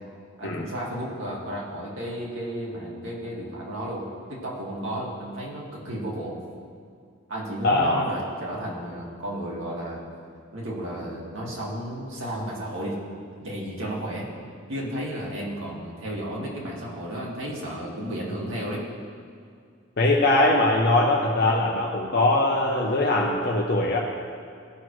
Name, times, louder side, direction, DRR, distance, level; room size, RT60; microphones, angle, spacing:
voice 1, 0.4-6.4 7.3-10.0 10.5-13.0 13.4-14.3 14.7-18.9, right 1 dB, 75° right, -4 dB, 2.0 m, -33 dB
voice 2, 7.6-8.1 20.0-24.0, left 2 dB, 50° left, -1 dB, 0.7 m, -21 dB
15.5 x 6.1 x 3.2 m, 2.3 s
head